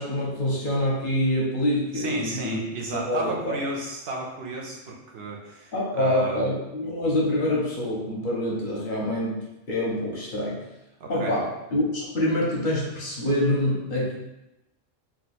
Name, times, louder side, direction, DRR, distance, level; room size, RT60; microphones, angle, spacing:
voice 1, 0.0-2.6 2.9-3.6 5.7-10.6 11.1-14.1, left 1 dB, 45° left, -4 dB, 0.9 m, -26 dB
voice 2, 1.9-6.5 11.0-11.4, right 2 dB, 60° right, -1 dB, 0.7 m, -33 dB
2.8 x 2.3 x 4.1 m, 0.93 s
omnidirectional pair, 1.3 m